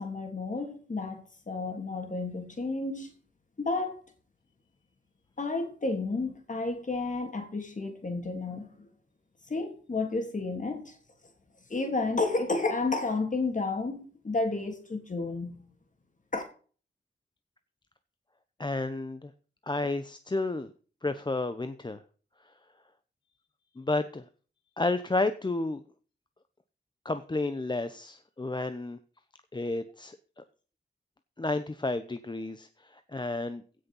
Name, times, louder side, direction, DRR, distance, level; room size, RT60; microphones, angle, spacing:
voice 1, 0.0-3.1 3.6-4.0 5.4-8.9 9.5-10.9 11.7-15.6 16.3-16.4, left 3 dB, 45° left, 3.3 m, -31 dB
voice 2, 18.6-19.3 19.7-20.7 21.0-22.0 23.8-24.2 24.8-25.8 27.0-29.0 29.5-30.4 31.4-33.6, left 2 dB, 25° left, 0.9 m, -31 dB
16.5 x 6.6 x 5.5 m
wide cardioid pair, 105°, 19 cm